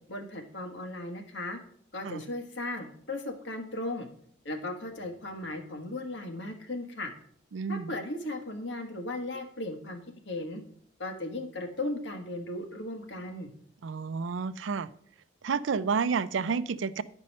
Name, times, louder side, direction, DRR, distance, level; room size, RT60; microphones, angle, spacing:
voice 1, 0.0-1.6 1.9-4.1 4.4-7.1 7.7-10.0 10.2-10.6 11.0-13.5, left 2 dB, 75° left, 1.4 m, -36 dB
voice 2, 7.5-7.9 13.8-14.9 15.4-17.0, right 5 dB, 90° right, 0.5 m, -30 dB
10.5 x 5.4 x 5.3 m
head